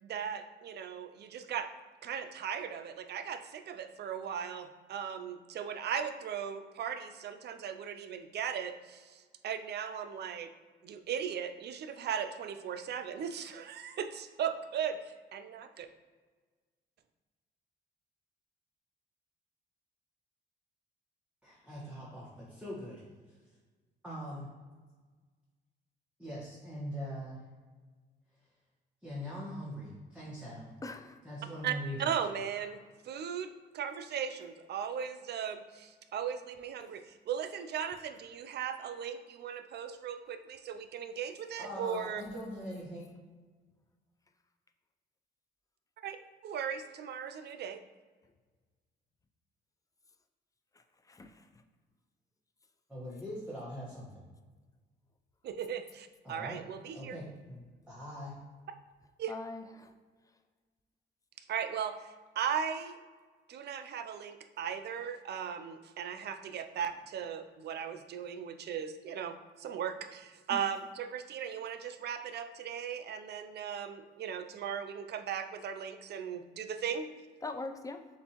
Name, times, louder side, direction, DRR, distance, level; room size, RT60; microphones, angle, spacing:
voice 1, 0.0-1.7 2.0-10.5 10.8-15.9 31.6-42.2 46.0-46.2 46.4-47.8 55.4-57.2 59.2-59.3 61.5-63.0 63.5-77.1, right 8 dB, 55° right, 9 dB, 0.4 m, -37 dB
voice 2, 21.4-23.4 24.0-24.5 26.2-27.4 29.0-30.7 31.2-32.1 41.6-43.0 52.9-54.3 56.2-56.6 56.9-58.4, equal, 5° right, -7 dB, 1.2 m, -42 dB
voice 3, 30.8-31.2 51.1-51.4 59.3-59.9 70.5-70.6 77.4-78.0, left 3 dB, 15° left, 7 dB, 0.4 m, -41 dB
6.8 x 2.6 x 2.9 m, 1.4 s
cardioid pair, 90°, 20 cm